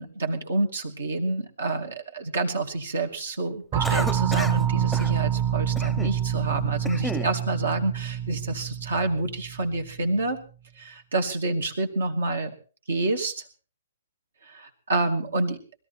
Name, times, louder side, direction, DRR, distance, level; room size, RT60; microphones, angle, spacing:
voice 1, 0.0-10.4 10.8-12.5 12.9-13.4 14.4-15.6, right 2 dB, 75° right, 5 dB, 2.5 m, -28 dB
sound 1, 3.7-10.0, right 10 dB, 30° right, 0.8 m, -27 dB
Cough, 3.8-4.6 4.9-5.1 5.8-6.2 6.6-7.3, left 1 dB, 5° left, 0.7 m, -33 dB
20.5 x 13.5 x 4.3 m, 0.36 s
hypercardioid pair, 130°, 0 cm